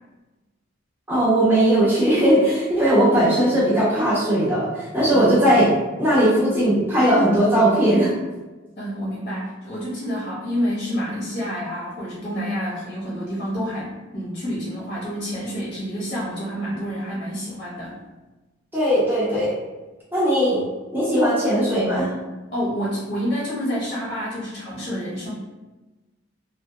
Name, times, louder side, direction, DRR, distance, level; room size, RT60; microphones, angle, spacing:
voice 1, 1.1-5.7 6.0-8.2 18.7-19.5 20.1-20.6 20.9-22.1, right 1 dB, 10° right, -9 dB, 0.8 m, -18 dB
voice 2, 8.8-17.9 22.5-25.3, equal, 40° left, -7 dB, 0.7 m, -28 dB
2.6 x 2.2 x 2.3 m, 1.2 s
head